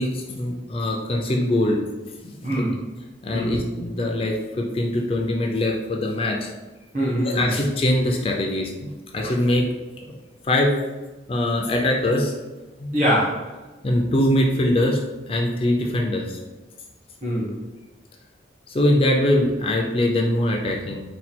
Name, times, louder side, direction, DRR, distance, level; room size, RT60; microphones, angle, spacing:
voice 1, 0.0-1.8 2.2-2.6 3.2-6.5 7.2-9.7 10.1-10.2 10.4-10.8 11.3-12.3 12.8-12.9 13.8-15.0 15.3-16.4 18.7-21.0, left 1 dB, 30° left, 1 dB, 0.4 m, -22 dB
voice 2, 2.4-2.8 3.3-3.5 6.9-7.5 12.9-13.5 17.2-17.6, equal, 40° right, -5 dB, 1.3 m, -23 dB
4.2 x 2.3 x 4.2 m, 1.2 s
head